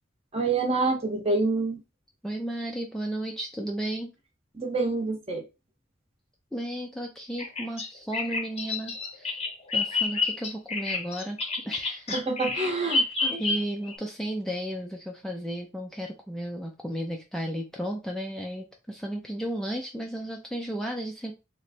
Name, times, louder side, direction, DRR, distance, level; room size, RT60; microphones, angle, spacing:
voice 1, 0.3-1.8 4.5-5.4 12.1-13.3, right 3 dB, 30° right, 3 dB, 0.8 m, -27 dB
voice 2, 2.2-4.1 6.5-9.4 9.7-11.4 11.6-12.2 12.5-12.9 13.3-21.3, right 1 dB, 5° left, 1 dB, 0.4 m, -34 dB
Bird vocalization bird call bird song, 7.4-14.0, left 3 dB, 30° left, 0.7 m, -29 dB
3.1 x 2.2 x 4.1 m, 0.27 s
head